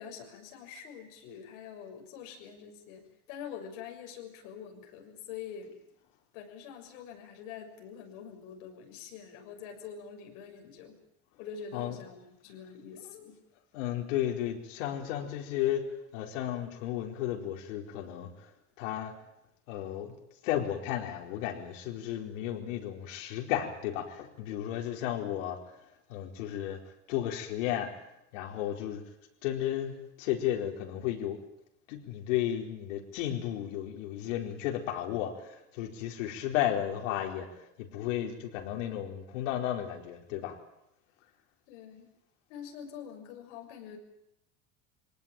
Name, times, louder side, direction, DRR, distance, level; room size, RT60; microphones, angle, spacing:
voice 1, 0.0-5.8 6.3-11.0 11.4-13.4 41.7-42.1 42.5-44.0, left 7 dB, 75° left, 3 dB, 6.7 m, -45 dB
voice 2, 13.7-15.8 16.1-18.5 18.8-19.1 19.7-20.1 20.4-25.8 26.1-26.8 27.1-28.1 28.3-29.0 29.4-31.4 31.9-40.5, left 11 dB, 90° left, 3 dB, 4.5 m, -33 dB
25.5 x 18.5 x 9.0 m, 0.83 s
cardioid pair, 170°, 37 cm